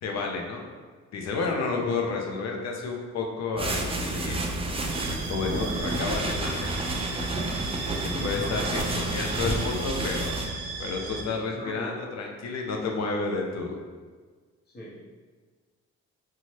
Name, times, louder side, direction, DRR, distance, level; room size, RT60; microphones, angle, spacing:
voice 1, 0.0-0.6 1.1-4.5 5.3-6.7 8.2-10.4 10.8-13.8, left 4 dB, 60° left, 1 dB, 0.6 m, -30 dB
sound 1, 3.6-10.5, right 2 dB, 20° right, 0.3 m, -30 dB
sound 2, 4.9-11.2, right 4 dB, 80° right, 0.6 m, -36 dB
voice 2, 7.9-8.9 11.0-11.1 11.5-11.9 14.7-15.1, equal, 35° left, -5 dB, 0.9 m, -38 dB
2.7 x 2.3 x 3.1 m, 1.5 s
cardioid pair, 90°, 30 cm